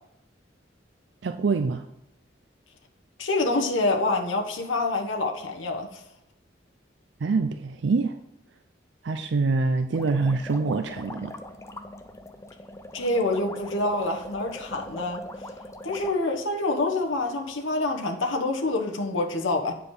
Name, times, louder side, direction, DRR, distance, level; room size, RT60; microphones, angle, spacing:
voice 1, 1.2-1.8 7.2-8.2 9.0-11.3, right 4 dB, 70° right, 0.4 m, -25 dB
voice 2, 3.2-6.0 12.9-15.2 15.8-19.7, left 2 dB, 85° left, 1.1 m, -26 dB
sound 1, 9.9-16.1, left 1 dB, 15° left, 0.4 m, -41 dB
9.0 x 5.0 x 4.7 m
head